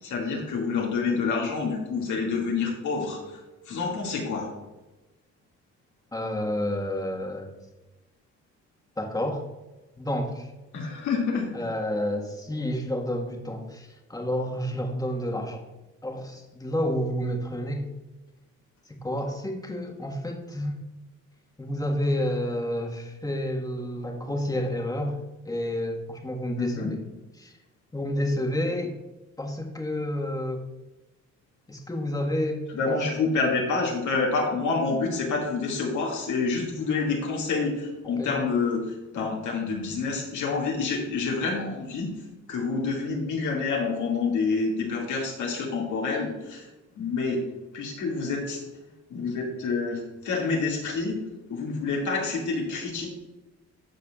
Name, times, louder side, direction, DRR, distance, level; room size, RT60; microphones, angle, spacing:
voice 1, 0.0-3.4 3.7-4.5 10.7-11.5 26.6-26.9 32.7-42.1 42.5-46.7 47.0-47.4 47.7-48.6 49.1-51.2 51.5-53.1, left 4 dB, 75° left, -2 dB, 2.2 m, -28 dB
voice 2, 6.1-7.5 9.0-9.4 10.0-10.5 11.5-15.6 16.0-17.9 18.9-20.8 21.6-25.2 25.4-27.0 27.4-27.5 27.9-28.9 29.4-30.6 31.7-33.0 38.2-38.4, left 1 dB, 10° left, 1 dB, 1.6 m, -30 dB
14.0 x 4.7 x 2.4 m, 1.1 s
cardioid pair, 90°, 30 cm